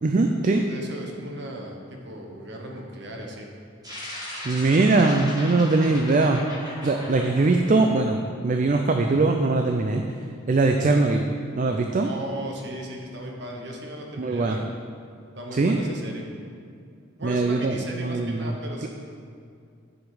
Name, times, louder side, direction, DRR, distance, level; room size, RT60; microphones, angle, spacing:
voice 1, 0.0-0.6 4.4-6.4 6.8-8.2 8.4-10.0 10.5-11.3 11.6-12.1 14.2-14.6 15.6-15.8 17.2-18.5, right 3 dB, 40° right, 4 dB, 0.4 m, -21 dB
voice 2, 0.5-3.5 12.0-14.6 15.4-16.3 17.2-18.9, right 1 dB, 55° right, 0 dB, 1.1 m, -36 dB
sound 1, 3.8-8.5, left 1 dB, 20° right, 1.6 m, -38 dB
9.6 x 5.1 x 5.0 m, 2.3 s
head